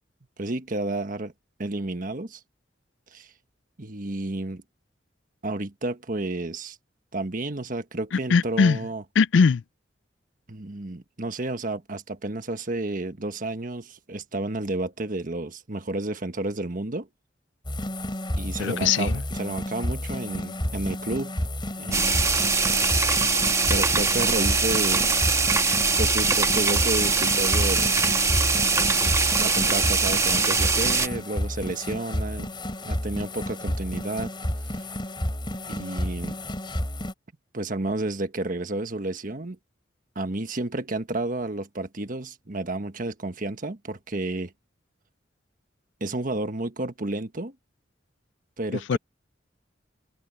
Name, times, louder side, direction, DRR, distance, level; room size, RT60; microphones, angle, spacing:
voice 1, 0.4-1.3 1.6-2.4 3.1-3.3 3.8-4.6 5.4-6.8 7.1-9.0 10.5-17.1 18.4-21.3 21.8-22.3 23.7-25.1 26.0-28.0 28.8-29.1 29.4-32.5 32.8-34.3 35.7-36.4 37.5-39.6 40.1-44.5 46.0-47.5 48.6-49.0, right 2 dB, 50° right, 1.4 m, -31 dB
voice 2, 8.1-8.9 9.2-9.6 18.6-19.2 48.7-49.0, left 5 dB, 90° left, 0.4 m, -21 dB
sound 1, 17.6-37.1, left 1 dB, 25° left, 3.6 m, -31 dB
sound 2, 21.9-31.1, right 4 dB, 15° right, 1.3 m, -22 dB
head